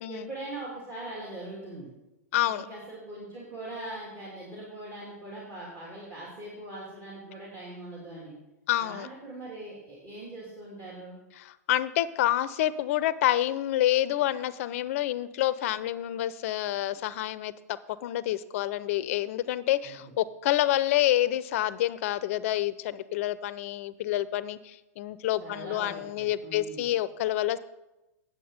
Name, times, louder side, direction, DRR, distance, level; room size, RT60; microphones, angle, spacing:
voice 1, 0.1-1.9 2.5-8.3 8.8-11.2 19.8-20.1 25.4-26.8, right 2 dB, 35° right, -6 dB, 2.9 m, -41 dB
voice 2, 2.3-2.7 8.7-9.1 11.4-27.6, left 13 dB, 55° left, 17 dB, 0.5 m, -28 dB
9.5 x 7.4 x 5.1 m, 0.97 s
hypercardioid pair, 105°, 9 cm